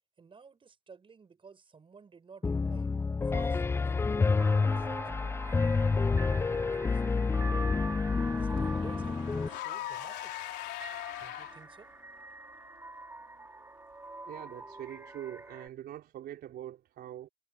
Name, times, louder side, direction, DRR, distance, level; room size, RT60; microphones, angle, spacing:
voice 1, 0.2-2.9 3.2-3.9 4.4-5.1 5.4-5.9 6.2-7.4 8.3-10.3 11.2-11.9, right 5 dB, 30° right, 7.3 m, -54 dB
Piano, 2.4-9.5, left 4 dB, 15° left, 0.3 m, -28 dB
sound 1, 4.4-15.7, right 3 dB, 15° right, 4.3 m, -45 dB
Car / Engine, 6.8-11.9, left 16 dB, 90° left, 3.4 m, -42 dB
voice 2, 14.3-17.3, right 12 dB, 65° right, 4.5 m, -43 dB
cardioid pair, 110°, 17 cm